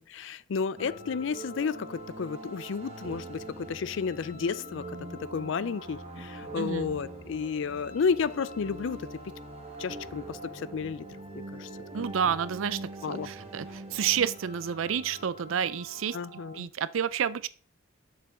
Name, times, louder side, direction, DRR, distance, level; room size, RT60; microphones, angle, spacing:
voice 1, 0.1-4.9 5.3-9.0 9.8-11.0 11.3-11.7 13.0-13.3 16.1-16.7, left 5 dB, 65° left, 0.4 m, -32 dB
sound 1, 0.8-16.6, right 1 dB, 30° right, 1.3 m, -43 dB
voice 2, 6.6-6.9 11.9-16.2 16.5-17.5, right 8 dB, 75° right, 0.4 m, -30 dB
7.0 x 6.6 x 3.7 m
head